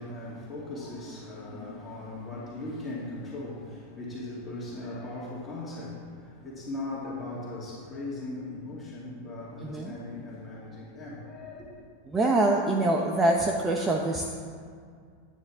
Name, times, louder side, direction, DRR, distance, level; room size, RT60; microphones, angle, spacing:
voice 1, 0.0-11.9, left 2 dB, 20° left, -6 dB, 2.2 m, -38 dB
voice 2, 9.6-9.9 12.1-14.3, right 2 dB, 20° right, 1 dB, 0.8 m, -25 dB
9.4 x 9.3 x 3.6 m, 2.1 s
hypercardioid pair, 100°, 0 cm